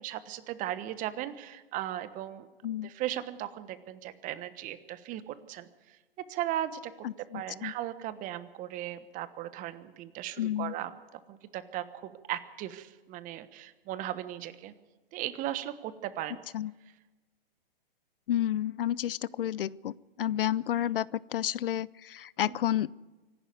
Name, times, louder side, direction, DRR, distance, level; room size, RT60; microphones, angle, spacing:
voice 1, 0.0-2.5 2.8-5.7 6.3-7.1 7.3-11.0 11.3-14.7 15.1-16.4 22.5-22.6, right 13 dB, 25° right, 13 dB, 1.3 m, -37 dB
voice 2, 7.0-7.7 10.4-10.7 16.5-16.7 18.3-22.9, left 11 dB, 65° left, 22 dB, 0.6 m, -31 dB
25.0 x 11.5 x 9.4 m, 1.2 s
hypercardioid pair, 125°, 30 cm